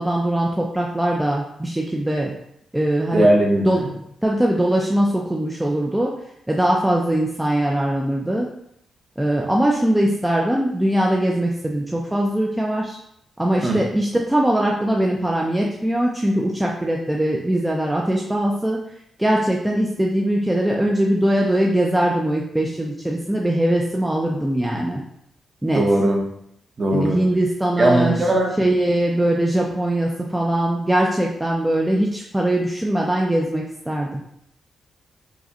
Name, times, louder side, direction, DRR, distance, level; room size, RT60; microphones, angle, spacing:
voice 1, 0.0-2.3 2.7-3.3 3.7-3.8 4.2-6.1 6.5-8.5 9.2-13.0 13.4-18.8 19.2-25.0 25.6-25.9 26.9-28.2 28.6-34.2, right 1 dB, 10° right, -1 dB, 0.3 m, -21 dB
voice 2, 3.1-3.9 13.6-13.8 25.7-26.2 26.8-27.2 27.8-28.5, right 1 dB, 35° right, 1 dB, 0.7 m, -18 dB
4.7 x 2.1 x 2.8 m, 0.74 s
cardioid pair, 120°, 0 cm